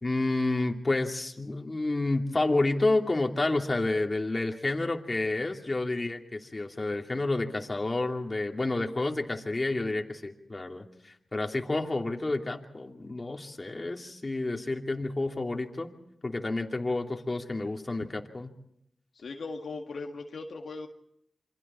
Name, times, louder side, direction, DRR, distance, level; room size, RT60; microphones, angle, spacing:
voice 1, 0.0-15.9 16.2-18.5, left 2 dB, 35° left, 2 dB, 2.7 m, -30 dB
voice 2, 19.2-20.9, left 3 dB, 75° left, 2 dB, 1.8 m, -38 dB
27.5 x 24.5 x 4.4 m, 0.75 s
cardioid pair, 55°, 0 cm